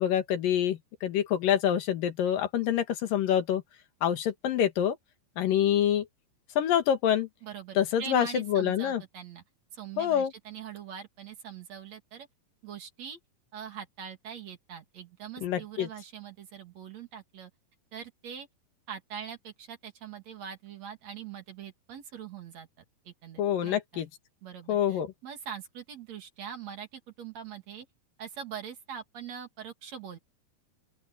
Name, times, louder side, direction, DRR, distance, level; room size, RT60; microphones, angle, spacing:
voice 1, 0.0-3.6 4.0-5.0 5.4-6.1 6.6-7.3 7.8-9.0 10.0-10.3 15.4-15.9 23.4-24.1 24.7-25.1, left 10 dB, 75° left, 3.2 m, -26 dB
voice 2, 7.4-9.4 9.7-12.3 12.6-13.2 13.5-17.5 17.9-18.5 18.9-22.7 23.0-24.0 24.4-27.9 28.2-30.2, right 8 dB, 55° right, 3.1 m, -43 dB
open air
omnidirectional pair, 4.0 m